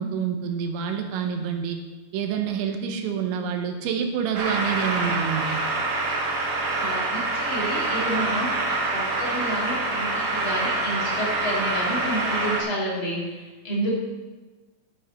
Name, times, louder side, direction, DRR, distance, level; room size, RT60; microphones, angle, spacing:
voice 1, 0.0-1.8 2.1-5.6, right 7 dB, 85° right, 5 dB, 3.3 m, -27 dB
sound 1, 4.3-12.6, right 2 dB, 50° right, 2.2 m, -26 dB
voice 2, 6.8-8.5 8.9-13.9, right 1 dB, 35° left, -5 dB, 2.4 m, -30 dB
11.0 x 9.8 x 4.4 m, 1.2 s
omnidirectional pair, 5.2 m